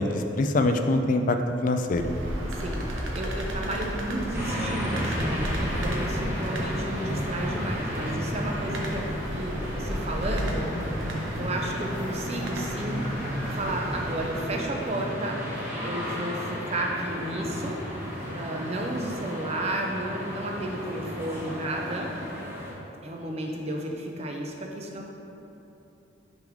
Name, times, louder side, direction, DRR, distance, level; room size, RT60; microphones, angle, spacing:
voice 1, 0.0-2.1, left 2 dB, 40° left, 6 dB, 0.3 m, -24 dB
sound 1, 1.8-14.8, equal, 85° right, 0.8 m, -34 dB
voice 2, 3.1-9.1 9.3-10.7 11.4-13.0 13.5-15.4 15.8-17.8 18.3-22.1 23.0-25.1, right 1 dB, 30° right, 1 dB, 0.6 m, -32 dB
sound 2, 4.3-22.7, equal, 10° right, 1.3 m, -33 dB
6.0 x 3.7 x 4.9 m, 3.0 s
head